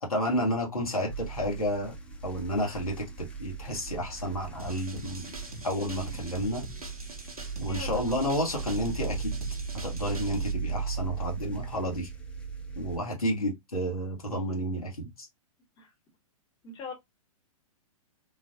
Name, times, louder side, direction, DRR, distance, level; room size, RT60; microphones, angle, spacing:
voice 1, 0.0-1.9 2.2-5.3 5.6-6.6 7.6-9.4 9.8-12.1 12.8-15.3, equal, 85° left, 1.4 m, -31 dB
sound 1, 1.1-13.0, right 5 dB, 5° left, 0.7 m, -37 dB
sound 2, 4.6-10.5, right 2 dB, 85° right, 0.8 m, -43 dB
voice 2, 7.7-8.3 15.8-15.9 16.6-16.9, left 4 dB, 25° left, 1.3 m, -43 dB
3.9 x 2.5 x 2.6 m
figure-of-eight pair, 110°, 18 cm